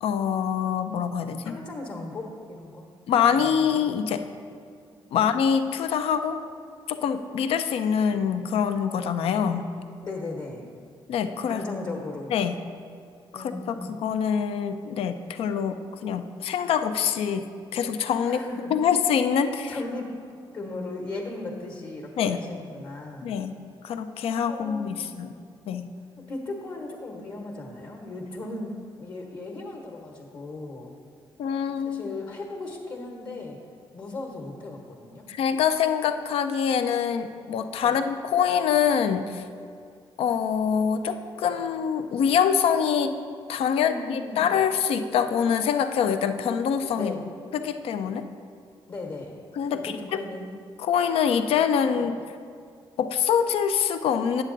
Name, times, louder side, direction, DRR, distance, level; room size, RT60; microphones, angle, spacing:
voice 1, 0.0-1.6 3.1-4.2 5.1-6.4 6.9-9.7 11.1-11.6 12.3-12.5 13.3-18.4 18.7-19.8 22.2-22.4 23.2-23.5 23.8-25.3 25.7-25.9 31.4-32.1 35.3-39.4 40.2-43.2 43.5-47.1 47.5-48.2 49.6-50.2 50.8-52.1 53.0-54.4, left 7 dB, 75° left, 9 dB, 0.5 m, -25 dB
voice 2, 1.4-2.9 3.3-3.9 5.1-5.2 10.0-10.7 11.5-12.3 13.3-14.0 18.2-18.7 19.7-20.1 20.5-23.3 24.5-25.3 26.2-30.9 31.8-33.6 33.9-35.3 37.8-38.0 43.8-44.5 46.9-47.2 48.9-49.4 49.7-50.5 51.9-52.1, left 2 dB, 50° left, -1 dB, 1.3 m, -37 dB
8.9 x 7.4 x 3.9 m, 2.2 s
cardioid pair, 100°, 10 cm